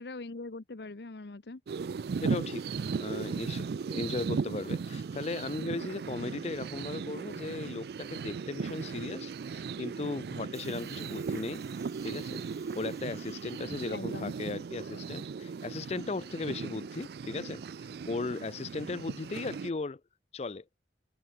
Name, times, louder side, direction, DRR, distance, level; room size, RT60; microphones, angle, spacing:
voice 1, 0.0-1.6 13.9-14.3, left 3 dB, 70° left, 0.9 m, -41 dB
sound 1, 1.7-19.7, right 5 dB, 60° right, 0.4 m, -37 dB
voice 2, 2.2-2.6 3.0-11.6 12.0-12.4 12.7-20.0 20.3-20.6, left 3 dB, 35° left, 0.4 m, -37 dB
Hiss, 10.5-14.7 15.7-15.8, right 5 dB, 20° right, 6.6 m, -58 dB
head